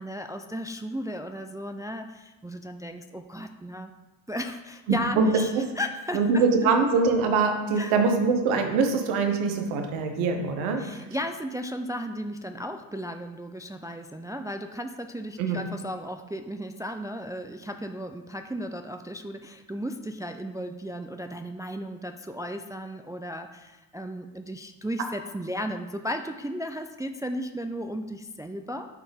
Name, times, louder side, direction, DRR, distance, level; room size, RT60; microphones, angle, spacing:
voice 1, 0.0-3.9 4.3-6.4 7.8-7.9 10.8-28.9, equal, 10° right, 6 dB, 0.4 m, -35 dB
voice 2, 4.9-5.3 6.1-10.8 15.4-15.6, right 4 dB, 85° right, 5 dB, 0.9 m, -23 dB
10.0 x 4.1 x 3.4 m, 1.1 s
hypercardioid pair, 45°, 48 cm